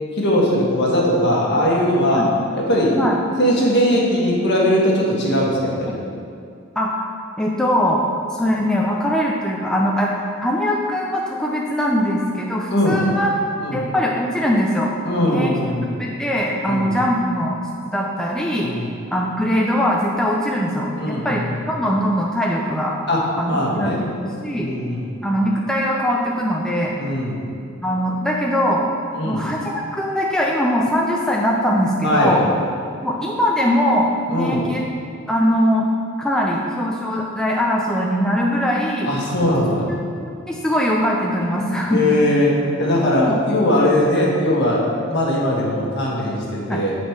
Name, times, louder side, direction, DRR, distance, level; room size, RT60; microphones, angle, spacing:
voice 1, 0.1-2.3 2.5-2.9 3.4-5.9 12.7-13.0 13.6-13.8 15.0-16.0 16.7-16.9 18.6-18.9 20.9-21.4 23.1-24.0 24.5-25.1 27.0-27.4 29.1-29.4 32.0-32.4 34.3-34.7 39.0-39.9 41.4-47.0, left 1 dB, 55° left, -3 dB, 1.4 m, -20 dB
voice 2, 6.8-7.1 7.4-8.0 8.3-13.3 13.7-14.9 15.2-15.6 16.0-18.7 19.1-22.9 23.4-23.9 24.2-24.7 25.2-27.0 27.8-28.9 29.3-32.4 33.0-34.8 35.3-35.9 36.2-39.1 39.9-40.0 40.3-42.2 43.2-43.4 46.7-46.8, equal, 5° left, -3 dB, 0.4 m, -21 dB
8.1 x 4.2 x 4.6 m, 2.4 s
head